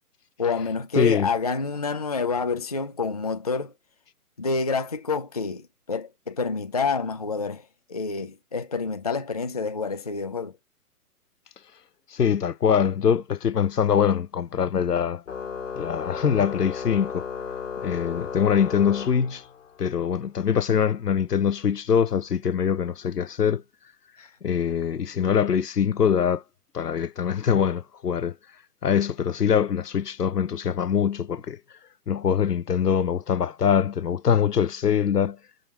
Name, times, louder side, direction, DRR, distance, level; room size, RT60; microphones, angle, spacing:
voice 1, 0.4-3.7 4.4-10.5 24.2-24.3, left 4 dB, 25° left, 0.4 m, -28 dB
voice 2, 1.0-1.3 12.1-15.2 15.8-17.2 17.8-19.4 19.8-23.6 24.4-26.4 26.7-28.3 28.8-31.6 32.1-35.4, left 7 dB, 85° left, 0.7 m, -23 dB
Organ, 15.3-19.8, left 6 dB, 50° left, 1.2 m, -34 dB
6.7 x 3.7 x 4.3 m
figure-of-eight pair, 135°, 46 cm